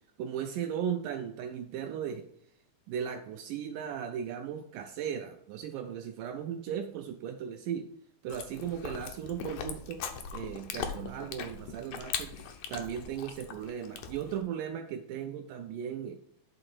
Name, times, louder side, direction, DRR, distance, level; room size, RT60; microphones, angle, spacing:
voice 1, 0.2-2.3 2.9-7.9 8.2-10.0 10.3-12.3 12.7-16.2, right 8 dB, 90° right, 6 dB, 1.8 m, -36 dB
Chewing mastication, 8.3-14.4, left 7 dB, 75° left, 1.7 m, -40 dB
11.0 x 3.8 x 4.5 m, 0.70 s
omnidirectional pair, 4.4 m